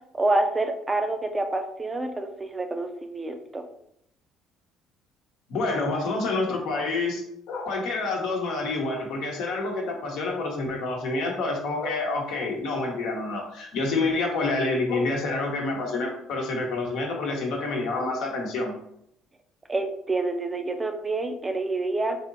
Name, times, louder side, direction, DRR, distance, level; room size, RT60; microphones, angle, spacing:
voice 1, 0.1-3.6 19.7-22.2, right 2 dB, 20° right, 6 dB, 0.4 m, -27 dB
voice 2, 5.5-7.2 7.5-18.7, left 3 dB, 75° left, 0 dB, 0.9 m, -28 dB
3.5 x 2.8 x 2.6 m, 0.75 s
supercardioid pair, 85°, 0 cm